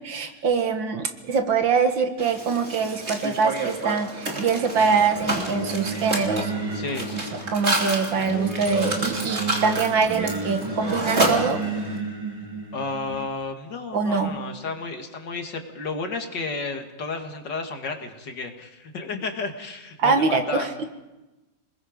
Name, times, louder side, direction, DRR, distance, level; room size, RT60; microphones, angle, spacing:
voice 1, 0.0-6.5 7.5-11.6 13.9-14.3 20.0-20.7, right 5 dB, 90° right, 7 dB, 2.4 m, -23 dB
Mechanisms, 2.2-12.0, right 2 dB, 35° right, 3.3 m, -29 dB
Singing, 4.7-13.2, right 3 dB, 15° right, 3.0 m, -32 dB
voice 2, 6.7-7.4 12.7-20.7, left 3 dB, 70° left, 4 dB, 2.7 m, -32 dB
28.5 x 21.0 x 5.2 m, 1.1 s
omnidirectional pair, 2.0 m